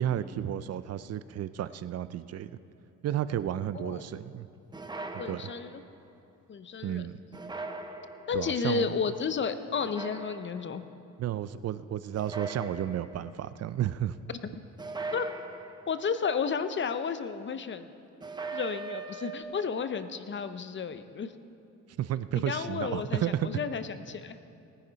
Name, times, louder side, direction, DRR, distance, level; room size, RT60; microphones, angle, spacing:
voice 1, 0.0-2.5 3.0-4.5 5.3-5.4 6.8-7.1 8.3-8.9 11.2-14.2 22.0-23.5, right 11 dB, 55° right, 14 dB, 0.5 m, -32 dB
voice 2, 3.7-4.1 5.2-5.8 6.5-7.0 8.3-10.8 15.1-15.3 15.9-17.9 18.5-21.3 22.3-24.4, left 6 dB, 40° left, 11 dB, 0.7 m, -32 dB
sound 1, 4.7-5.9 7.3-8.5 9.8-10.8 12.1-13.3 14.8-16.1 18.2-19.4, right 3 dB, 15° right, 0.9 m, -40 dB
19.0 x 10.0 x 4.0 m, 2.7 s
cardioid pair, 90°, 30 cm